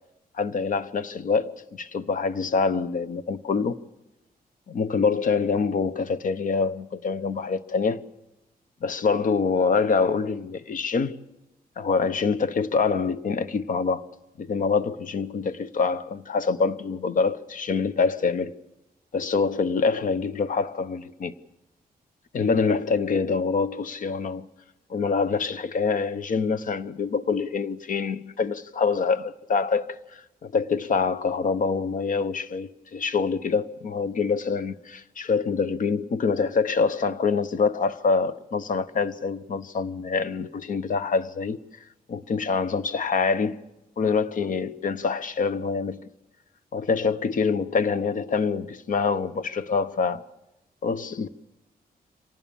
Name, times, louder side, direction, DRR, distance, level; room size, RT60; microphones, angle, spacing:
voice 1, 0.4-3.8 4.7-8.0 8.8-11.1 11.8-14.1 14.4-18.5 19.1-21.3 22.3-24.5 24.9-41.6 42.1-43.6 44.0-46.1 46.7-50.2 50.8-51.3, left 5 dB, 55° left, 1.0 m, -25 dB
25.0 x 18.5 x 7.0 m
wide cardioid pair, 170°, 16 cm